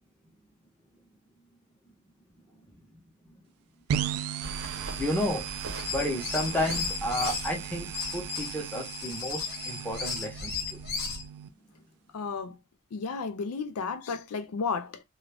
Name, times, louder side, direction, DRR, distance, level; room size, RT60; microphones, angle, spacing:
sound 1, 3.9-11.5, right 9 dB, 75° right, 0.3 m, -37 dB
voice 1, 4.4-5.4 5.9-10.5, left 1 dB, 5° left, 0.7 m, -32 dB
sound 2, 4.4-8.8, right 2 dB, 60° right, 0.7 m, -41 dB
sound 3, 5.7-7.5 7.9-11.2, left 5 dB, 45° left, 0.9 m, -35 dB
voice 2, 12.1-12.5 12.9-15.0, left 5 dB, 75° left, 0.4 m, -33 dB
2.5 x 2.3 x 3.3 m
head